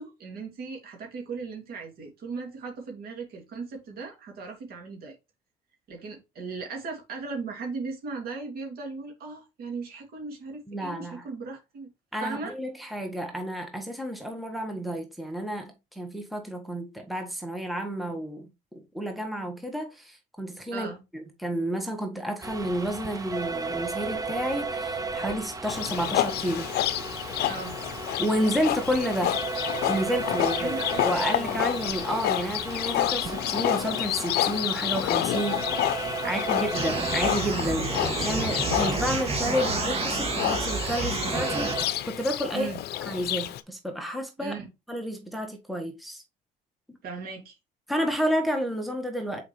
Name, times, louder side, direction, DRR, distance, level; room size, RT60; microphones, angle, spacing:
voice 1, 0.0-5.2 5.9-11.9 12.2-12.6 20.7-21.0 27.4-27.8 30.4-31.6 36.2-36.6 42.5-42.8 44.4-44.7 47.0-47.6, right 4 dB, 65° right, 2.7 m, -37 dB
voice 2, 10.7-11.3 12.1-18.5 18.9-20.9 21.1-26.7 28.2-29.3 29.9-36.0 36.2-42.7 43.0-44.5 44.9-46.2 46.9-47.0 47.9-49.4, equal, ahead, 1.5 m, -30 dB
sound 1, 22.4-41.9, right 3 dB, 20° right, 1.0 m, -35 dB
Livestock farm animals working animals, 25.7-43.6, left 13 dB, 70° left, 0.6 m, -29 dB
sound 2, 36.7-41.7, right 3 dB, 35° right, 2.0 m, -29 dB
6.4 x 4.9 x 3.2 m
cardioid pair, 110°, 17 cm